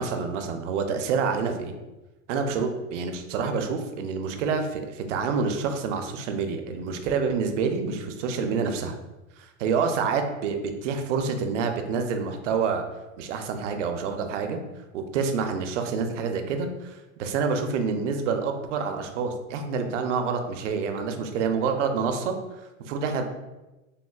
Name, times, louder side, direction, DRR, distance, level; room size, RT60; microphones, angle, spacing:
voice 1, 0.0-1.7 2.3-8.9 9.4-10.6 10.8-12.8 13.2-14.6 14.9-22.3 22.9-23.2, right 5 dB, 60° right, 6 dB, 0.5 m, -27 dB
3.4 x 2.4 x 2.3 m, 1.0 s
hypercardioid pair, 135°, 41 cm